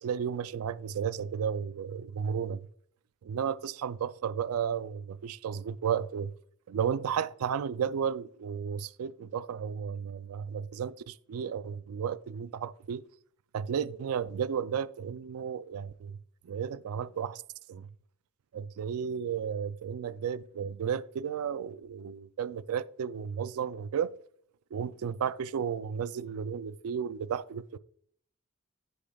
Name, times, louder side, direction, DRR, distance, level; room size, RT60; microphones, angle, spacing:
voice 1, 0.0-2.7 3.2-6.3 6.7-13.0 13.5-16.2 16.4-17.4 17.7-17.9 18.5-24.1 24.7-27.8, right 7 dB, 85° right, 0.4 m, -33 dB
10.5 x 8.4 x 2.3 m
head